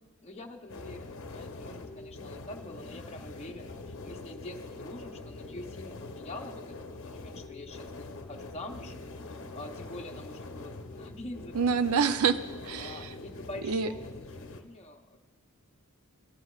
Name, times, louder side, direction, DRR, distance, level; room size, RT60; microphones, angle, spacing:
voice 1, 0.2-6.6 7.0-8.9 9.2-11.8 12.7-15.2, left 1 dB, 30° left, 2 dB, 0.7 m, -45 dB
sound 1, 0.7-14.6, left 2 dB, 65° left, 0.7 m, -44 dB
voice 2, 11.5-12.4 12.7-13.0 13.7-13.9, right 6 dB, 80° right, 10 dB, 0.5 m, -26 dB
16.5 x 9.8 x 2.4 m, 1.2 s
head